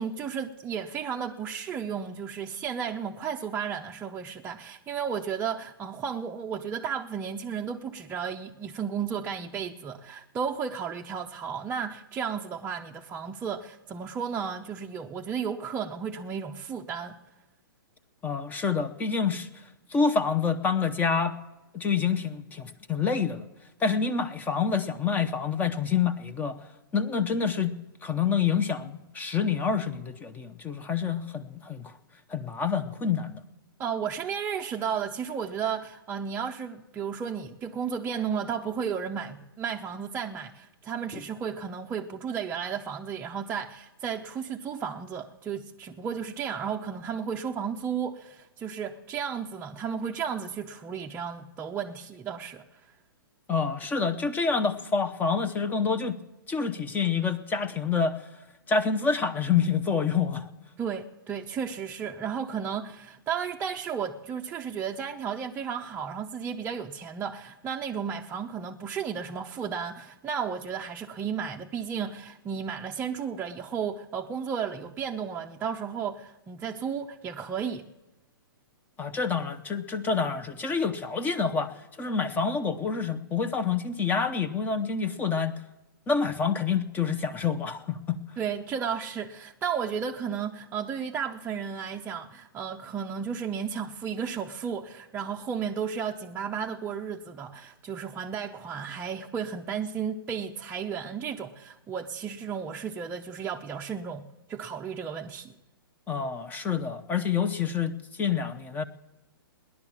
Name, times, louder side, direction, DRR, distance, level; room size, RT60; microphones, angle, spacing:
voice 1, 0.0-17.2 33.8-52.8 60.8-77.9 88.4-105.5, right 7 dB, 15° right, 0.6 m, -33 dB
voice 2, 18.2-19.5 19.9-21.3 21.7-23.5 23.8-26.6 26.9-31.9 32.3-33.4 53.5-56.2 56.5-58.2 58.7-60.5 79.0-85.5 86.1-88.2 106.1-108.8, left 5 dB, 15° left, 0.8 m, -27 dB
17.5 x 11.0 x 7.2 m
hypercardioid pair, 130°, 12 cm